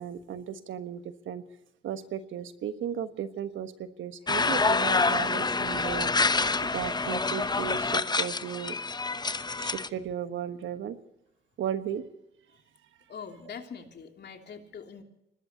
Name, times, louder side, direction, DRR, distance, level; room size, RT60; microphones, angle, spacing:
voice 1, 0.0-1.4 1.8-6.1 6.6-8.8 9.6-11.0 11.6-12.1, right 9 dB, 70° right, 10 dB, 1.3 m, -35 dB
sound 1, 4.3-9.9, left 3 dB, 20° left, 0.8 m, -27 dB
voice 2, 13.1-15.0, left 6 dB, 55° left, 3 dB, 3.0 m, -43 dB
25.5 x 20.0 x 2.9 m, 0.87 s
supercardioid pair, 65°, 20 cm